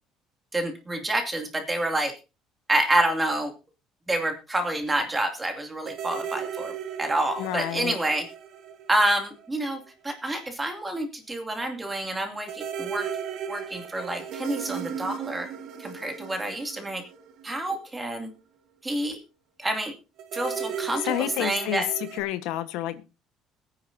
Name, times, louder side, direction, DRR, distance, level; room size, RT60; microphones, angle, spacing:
voice 1, 0.5-2.1 2.7-3.5 4.1-6.7 7.0-8.3 8.9-13.1 13.5-15.5 15.8-17.0 17.4-18.3 18.8-19.2 19.6-19.9 20.3-21.1 21.4-21.9, right 1 dB, 10° right, 2.5 m, -28 dB
sound 1, 5.8-9.6 9.9-10.0 12.4-17.9 20.2-22.2, right 7 dB, 55° right, 1.7 m, -36 dB
voice 2, 7.4-7.9 21.0-23.0, left 14 dB, 90° left, 1.3 m, -29 dB
21.5 x 9.7 x 2.7 m
cardioid pair, 165°, 0 cm